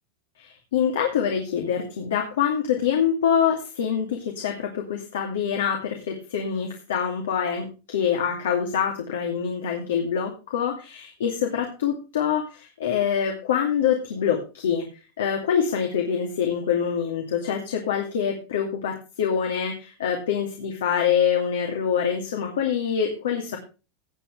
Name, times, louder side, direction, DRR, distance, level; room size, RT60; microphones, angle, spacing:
voice 1, 0.4-14.9 15.2-23.6, left 8 dB, 80° left, 2 dB, 2.5 m, -25 dB
17.5 x 8.0 x 3.3 m, 0.31 s
hypercardioid pair, 110°, 0 cm